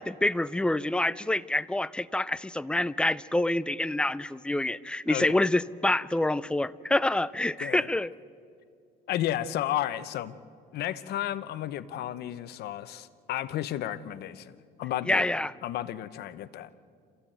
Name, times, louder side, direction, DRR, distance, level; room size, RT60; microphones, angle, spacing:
voice 1, 0.0-8.1 15.1-15.5, left 1 dB, 5° left, 16 dB, 0.5 m, -27 dB
voice 2, 5.1-5.4 7.6-7.9 9.1-10.4 10.7-15.3 15.6-16.7, left 12 dB, 70° left, 14 dB, 0.9 m, -33 dB
27.0 x 15.0 x 9.1 m, 2.3 s
cardioid pair, 110°, 17 cm